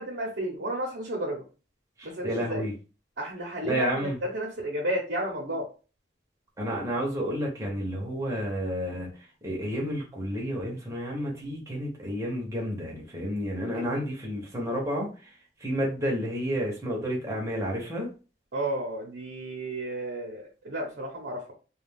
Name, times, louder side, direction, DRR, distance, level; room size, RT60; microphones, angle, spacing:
voice 1, 0.0-1.4 2.0-2.6 3.2-5.7 13.7-13.9 18.5-21.5, right 1 dB, 70° right, -2 dB, 0.7 m, -32 dB
voice 2, 2.0-2.7 3.6-4.2 6.6-9.1 9.4-15.3 15.6-18.1, equal, 15° right, -2 dB, 0.8 m, -30 dB
2.3 x 2.3 x 3.4 m, 0.34 s
head